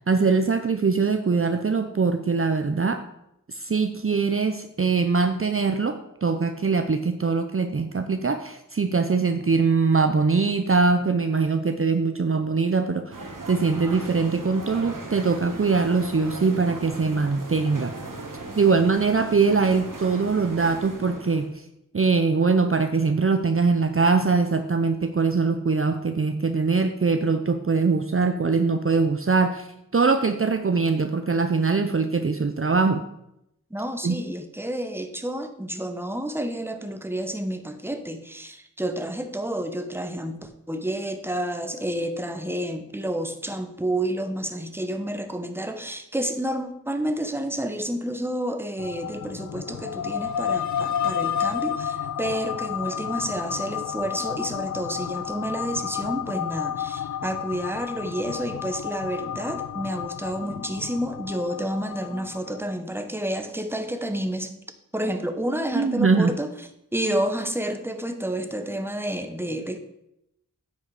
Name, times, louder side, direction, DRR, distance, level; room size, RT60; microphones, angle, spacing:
voice 1, 0.1-3.0 3.5-6.0 6.2-13.2 13.5-17.9 18.6-21.5 21.9-29.7 29.9-33.0 34.0-34.2 65.7-66.3, right 4 dB, 40° right, 7 dB, 0.7 m, -22 dB
sound 1, 13.1-21.5, right 2 dB, 75° right, 1.6 m, -38 dB
voice 2, 33.7-64.6 64.9-66.5 66.9-69.8, right 1 dB, 5° right, 7 dB, 1.1 m, -30 dB
sound 2, 48.8-62.7, left 8 dB, 60° left, 0.4 m, -31 dB
9.7 x 6.3 x 4.9 m, 0.81 s
wide cardioid pair, 50°, 32 cm